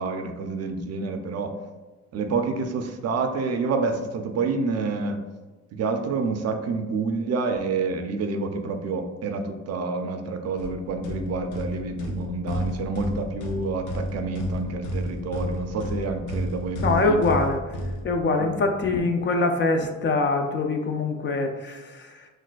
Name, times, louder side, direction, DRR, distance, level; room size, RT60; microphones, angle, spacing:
voice 1, 0.0-1.5 2.1-5.2 5.7-17.2 18.4-18.5, right 4 dB, 55° right, 6 dB, 0.4 m, -28 dB
sound 1, 10.6-18.6, equal, 80° left, 0.6 m, -32 dB
voice 2, 16.8-17.6 18.0-22.3, left 3 dB, 40° left, 5 dB, 0.4 m, -24 dB
4.0 x 2.5 x 2.3 m, 1.2 s
cardioid pair, 90°, 30 cm